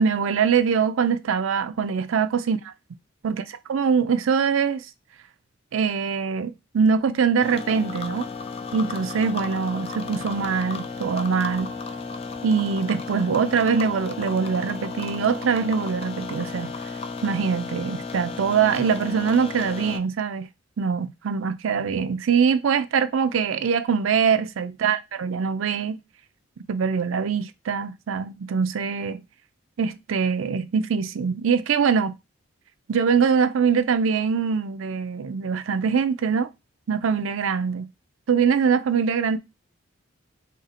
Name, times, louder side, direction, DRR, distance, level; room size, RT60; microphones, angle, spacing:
voice 1, 0.0-2.6 3.2-4.9 5.7-8.3 8.7-11.7 12.4-16.7 17.2-20.5 20.8-26.0 26.7-29.2 29.8-32.2 32.9-36.5 36.9-37.9 38.3-39.4, right 6 dB, 80° right, 0.4 m, -23 dB
sound 1, 7.4-20.0, left 4 dB, 30° left, 0.3 m, -34 dB
3.5 x 2.7 x 4.0 m
head